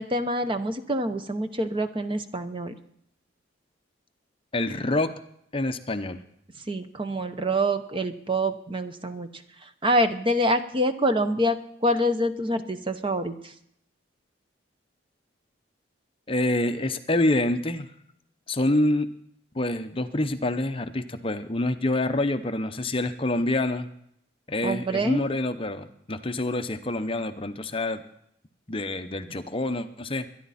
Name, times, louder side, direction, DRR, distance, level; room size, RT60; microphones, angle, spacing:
voice 1, 0.0-2.7 6.7-9.3 9.6-13.5 24.6-25.2, equal, 25° right, 9 dB, 0.8 m, -26 dB
voice 2, 4.5-5.1 5.5-6.2 16.3-17.9 18.5-19.1 19.5-23.9 24.5-28.0 28.7-30.3, left 1 dB, 30° left, 8 dB, 0.7 m, -26 dB
23.0 x 10.5 x 4.2 m, 0.72 s
head